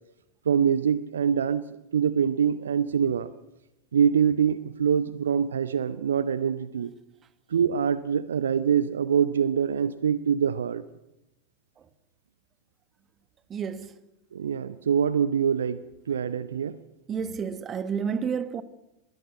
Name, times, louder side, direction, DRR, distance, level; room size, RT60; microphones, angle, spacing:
voice 1, 0.5-3.3 3.9-6.9 7.5-10.8 14.3-15.8 16.1-16.8, right 7 dB, 65° right, 0.7 m, -24 dB
voice 2, 13.5-14.0 17.1-18.6, right 6 dB, 25° right, 1.3 m, -30 dB
21.0 x 16.0 x 8.4 m
figure-of-eight pair, 90°, 0 cm